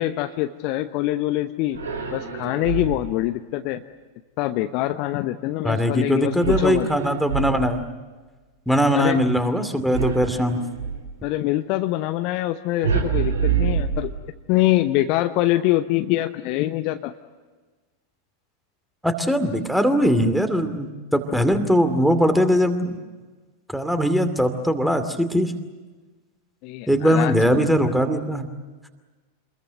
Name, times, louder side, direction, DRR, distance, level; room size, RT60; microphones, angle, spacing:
voice 1, 0.0-1.8 2.1-3.8 4.4-6.9 8.9-9.2 11.2-14.1 14.5-17.1 26.6-27.6, left 15 dB, 45° left, 9 dB, 0.9 m, -24 dB
sound 1, 1.7-3.2 6.4-8.0 9.9-11.1 12.8-14.5, right 7 dB, 70° right, 3.6 m, -26 dB
voice 2, 5.6-7.8 8.7-10.6 19.0-23.0 23.7-25.5 26.9-28.5, equal, ahead, 9 dB, 2.5 m, -20 dB
27.5 x 21.5 x 8.0 m, 1.3 s
figure-of-eight pair, 90°, 0 cm